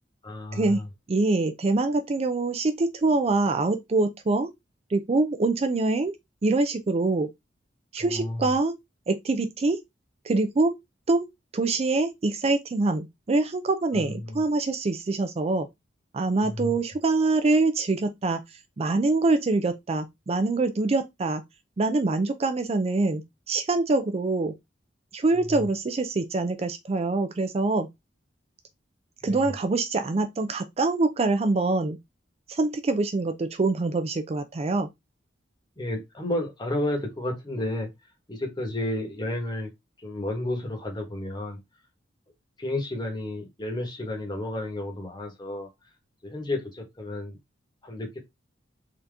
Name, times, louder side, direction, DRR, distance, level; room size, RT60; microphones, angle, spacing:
voice 1, 0.2-0.9 8.0-8.5 13.9-14.4 16.4-16.8 25.5-25.7 29.2-29.5 35.8-37.9 38.3-39.7 40.0-41.6 42.6-45.7 46.2-47.4 47.8-48.2, left 1 dB, 25° left, 1.2 m, -32 dB
voice 2, 1.1-4.5 4.9-6.1 6.4-7.3 7.9-8.7 9.1-9.8 10.2-10.8 11.1-11.3 11.5-15.7 16.1-21.4 21.8-23.2 23.5-24.5 25.1-27.9 29.2-32.0 32.5-34.9, right 3 dB, 35° right, 0.4 m, -24 dB
3.8 x 2.8 x 3.3 m
head